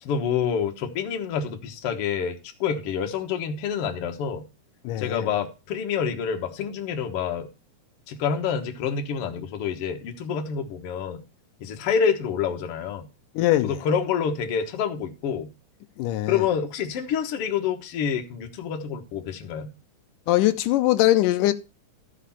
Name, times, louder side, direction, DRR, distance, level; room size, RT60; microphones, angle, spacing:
voice 1, 0.0-4.5 5.0-7.5 8.1-11.2 11.6-13.1 13.6-15.5 16.3-19.7, left 7 dB, 55° left, 1.9 m, -27 dB
voice 2, 4.8-5.3 13.4-13.8 16.0-16.4 20.3-21.5, left 15 dB, 90° left, 2.3 m, -21 dB
13.5 x 5.1 x 5.7 m
omnidirectional pair, 3.7 m